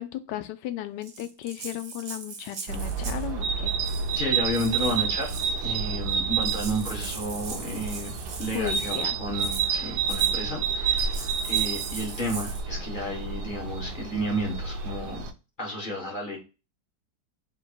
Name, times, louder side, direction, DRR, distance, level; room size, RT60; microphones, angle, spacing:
voice 1, 0.0-3.7 8.5-9.2, left 13 dB, 85° left, 10 dB, 1.2 m, -35 dB
Rattle (instrument), 1.0-3.3 3.8-4.2 4.5-5.6 6.1-6.2 6.4-9.0 9.4-9.7 10.1-10.3 11.0-12.6, right 5 dB, 55° right, 0.7 m, -40 dB
sound 1, 2.7-15.3, right 6 dB, 80° right, 1.2 m, -29 dB
voice 2, 4.1-5.4 5.6-11.1 11.4-15.3 15.6-16.4, equal, 35° left, -2 dB, 1.2 m, -32 dB
4.0 x 2.2 x 4.5 m, 0.30 s
omnidirectional pair, 1.8 m